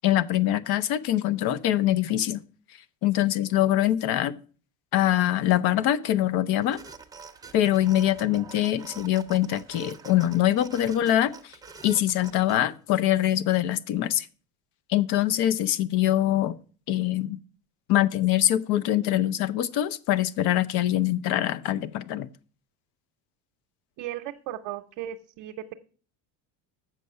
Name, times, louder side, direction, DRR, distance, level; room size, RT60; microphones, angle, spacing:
voice 1, 0.0-2.4 3.0-4.3 4.9-6.8 7.5-11.5 11.8-14.3 14.9-16.6 16.9-17.4 17.9-22.3, left 13 dB, 55° left, 15 dB, 0.7 m, -24 dB
sound 1, 6.6-12.6, right 5 dB, 10° right, 0.4 m, -46 dB
voice 2, 24.0-25.7, right 12 dB, 60° right, 3 dB, 0.7 m, -36 dB
7.6 x 5.4 x 6.6 m, 0.40 s
cardioid pair, 135°, 44 cm